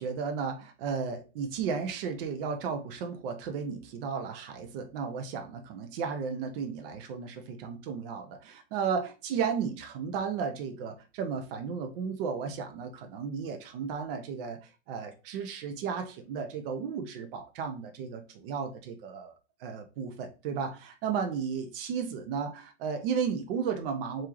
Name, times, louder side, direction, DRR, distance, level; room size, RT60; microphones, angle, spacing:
voice 1, 0.0-19.3 19.6-24.3, right 6 dB, 50° right, 0.9 m, -34 dB
4.6 x 3.7 x 3.1 m
hypercardioid pair, 125°, 36 cm